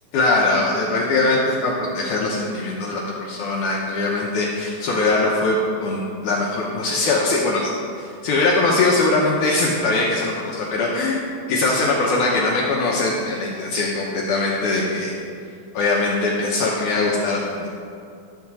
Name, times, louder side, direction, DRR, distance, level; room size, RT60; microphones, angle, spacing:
voice 1, 0.1-7.7 8.0-15.1 15.7-17.7, left 2 dB, 75° left, -4 dB, 1.9 m, -21 dB
12.0 x 4.2 x 6.0 m, 2.4 s
omnidirectional pair, 4.3 m